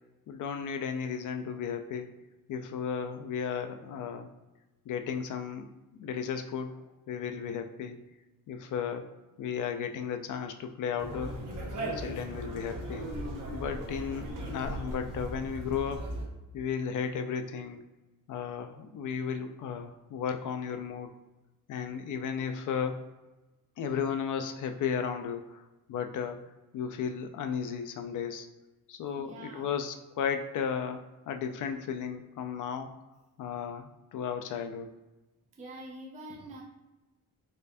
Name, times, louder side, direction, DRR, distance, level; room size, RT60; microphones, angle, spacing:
voice 1, 0.3-2.1 2.5-4.3 4.9-5.7 5.9-8.0 8.5-9.1 9.4-11.3 11.8-13.1 13.5-16.1 16.5-17.8 18.3-21.1 21.7-23.0 23.8-26.4 26.7-28.5 28.9-32.9 33.4-34.9, left 7 dB, 60° left, 7 dB, 0.5 m, -34 dB
Conversation, 11.0-16.2, right 1 dB, 60° right, 1.0 m, -38 dB
voice 2, 29.1-29.7 35.5-36.6, right 1 dB, 20° right, -2 dB, 0.4 m, -45 dB
4.2 x 2.5 x 2.5 m, 1.1 s
cardioid pair, 140°, 35 cm